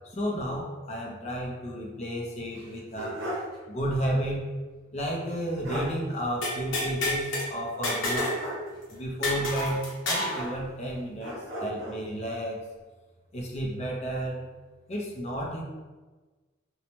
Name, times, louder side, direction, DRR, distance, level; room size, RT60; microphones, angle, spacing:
voice 1, 0.0-3.3 3.7-4.4 4.9-8.3 8.9-11.3 11.6-12.6 13.3-14.4 14.9-15.6, equal, 30° left, -2 dB, 0.5 m, -32 dB
sound 1, 2.5-3.6 3.9-4.0 5.3-5.4 5.6-6.0 8.1-8.8 10.3-10.9 11.2-12.0, right 1 dB, 60° right, 0.7 m, -35 dB
sound 2, 6.4-7.5 7.8-8.4 8.7-8.8 9.2-10.4, left 1 dB, 60° left, 0.8 m, -28 dB
2.6 x 2.1 x 2.9 m, 1.3 s
head